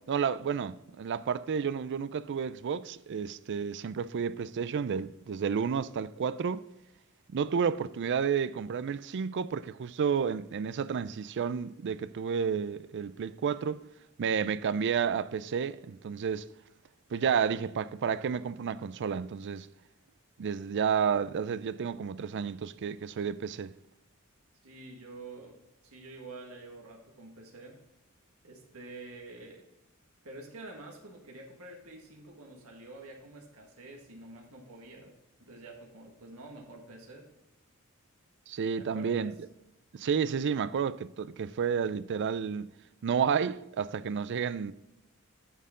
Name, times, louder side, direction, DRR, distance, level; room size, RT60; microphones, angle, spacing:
voice 1, 0.1-6.6 7.3-13.8 14.2-16.5 17.1-19.7 20.4-23.7 38.5-39.3 39.9-42.7 43.0-44.7, right 6 dB, 55° right, 0.4 m, -31 dB
voice 2, 24.6-27.8 28.4-29.7 30.2-37.3 38.8-39.2, right 2 dB, 75° right, 1.7 m, -48 dB
9.0 x 6.5 x 3.7 m
head